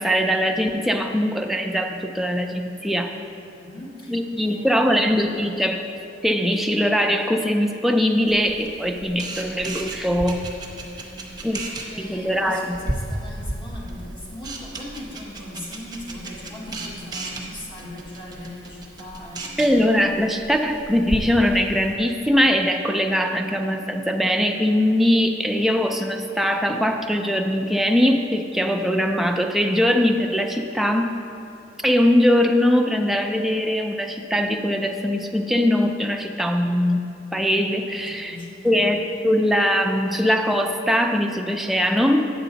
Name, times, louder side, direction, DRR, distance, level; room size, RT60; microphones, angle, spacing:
voice 1, 0.0-3.1 4.1-5.8 6.2-10.4 11.4-11.6 12.0-12.8 19.6-31.1 31.8-38.4 38.6-42.3, equal, ahead, 3 dB, 0.4 m, -21 dB
voice 2, 3.6-5.3 10.6-10.7 11.0-19.7 37.9-38.8, left 1 dB, 25° left, -4 dB, 1.5 m, -39 dB
Camera, 8.3-21.9, right 1 dB, 20° right, 0.8 m, -35 dB
9.0 x 6.7 x 4.0 m, 2.8 s
head